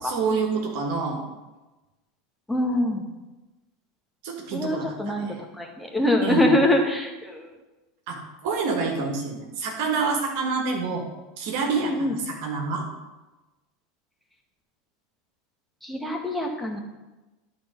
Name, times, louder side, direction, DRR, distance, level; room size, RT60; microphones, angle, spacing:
voice 1, 0.0-1.2 4.2-5.4 6.2-6.6 8.1-11.0 11.4-12.8, right 4 dB, 60° right, 1 dB, 1.8 m, -27 dB
voice 2, 2.5-3.1 4.5-7.5 11.8-12.1 15.8-16.8, left 1 dB, 5° left, 1 dB, 1.7 m, -24 dB
12.0 x 4.3 x 5.2 m, 1.1 s
hypercardioid pair, 80°, 0 cm